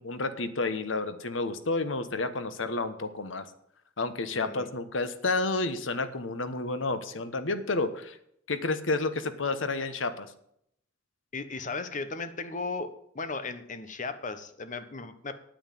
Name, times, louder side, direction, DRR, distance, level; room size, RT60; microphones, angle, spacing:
voice 1, 0.0-3.4 4.0-8.2 8.5-10.3, left 3 dB, 85° left, 11 dB, 1.2 m, -30 dB
voice 2, 4.3-4.7 11.3-12.9 13.1-15.3, left 3 dB, 40° left, 10 dB, 1.2 m, -36 dB
9.7 x 9.0 x 7.6 m, 0.71 s
head